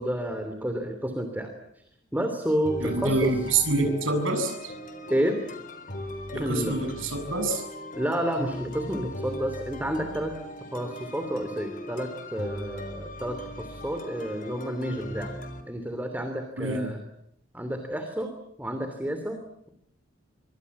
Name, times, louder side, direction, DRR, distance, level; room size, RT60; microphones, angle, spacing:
voice 1, 0.0-1.8 2.1-3.4 5.1-5.4 6.3-6.7 7.9-10.3 10.7-15.3 15.7-17.0 17.5-18.3 18.6-19.4, equal, 10° right, 7 dB, 3.1 m, -30 dB
sound 1, 2.6-15.6, left 1 dB, 45° left, 3.9 m, -39 dB
voice 2, 2.8-4.7 6.3-7.6 16.6-16.9, right 2 dB, 80° right, 6 dB, 7.2 m, -26 dB
26.0 x 24.0 x 8.5 m, 0.74 s
head